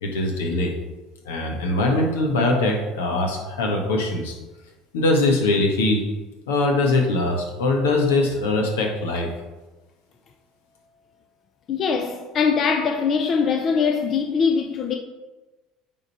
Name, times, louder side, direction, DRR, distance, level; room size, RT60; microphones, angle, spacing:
voice 1, 0.0-0.7 1.2-4.3 4.9-6.1 6.5-9.3, left 2 dB, 80° left, 1.4 m, -22 dB
voice 2, 11.7-15.0, left 5 dB, 45° left, 0.7 m, -22 dB
9.1 x 3.8 x 4.2 m
hypercardioid pair, 70°, 0 cm